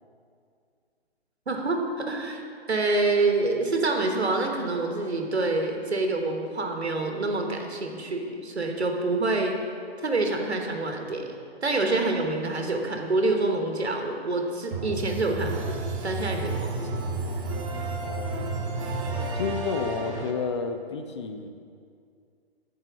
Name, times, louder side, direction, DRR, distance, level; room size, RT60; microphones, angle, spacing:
voice 1, 1.5-2.4 2.7-9.6 10.0-11.3 11.6-15.7 16.0-17.0, right 2 dB, 85° right, 3 dB, 1.2 m, -27 dB
sound 1, 14.7-20.3, right 2 dB, 30° right, 0.7 m, -31 dB
voice 2, 18.0-18.6 19.3-21.5, left 5 dB, 30° left, 7 dB, 0.4 m, -31 dB
8.9 x 4.6 x 5.9 m, 2.3 s
figure-of-eight pair, 135°, 32 cm